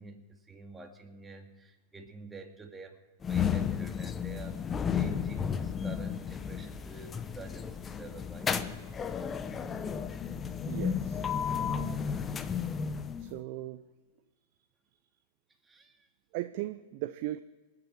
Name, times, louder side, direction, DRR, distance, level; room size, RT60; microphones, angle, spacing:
voice 1, 0.0-4.6 4.9-8.5 11.8-11.9 15.6-16.1, right 3 dB, 15° right, 3 dB, 2.4 m, -48 dB
sound 1, 3.2-13.4, left 7 dB, 20° left, 0.9 m, -33 dB
voice 2, 10.7-11.3 13.2-13.8 16.3-17.4, right 16 dB, 50° right, 11 dB, 0.6 m, -37 dB
27.5 x 9.9 x 4.6 m, 1.3 s
hypercardioid pair, 100°, 0 cm